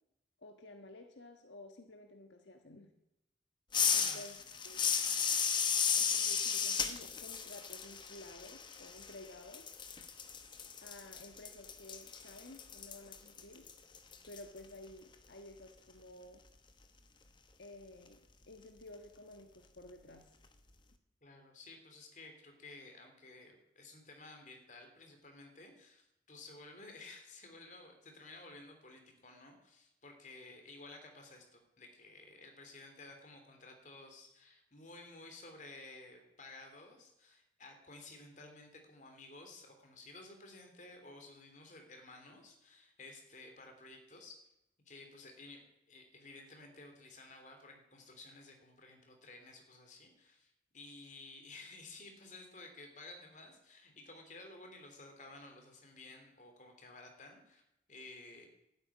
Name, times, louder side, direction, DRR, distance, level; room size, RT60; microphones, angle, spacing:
voice 1, 0.4-2.9 3.9-4.4 4.6-4.8 6.0-9.7 10.8-13.7 14.3-16.4 17.6-18.2 18.5-20.3, left 2 dB, 75° left, 3 dB, 1.4 m, -53 dB
sound 1, 3.7-9.3 9.5-14.4, left 7 dB, 25° left, 1.0 m, -34 dB
voice 2, 4.0-4.5 21.2-44.4 44.9-57.6 57.9-58.5, left 2 dB, 40° left, 4 dB, 3.1 m, -54 dB
12.5 x 9.7 x 9.7 m, 0.85 s
head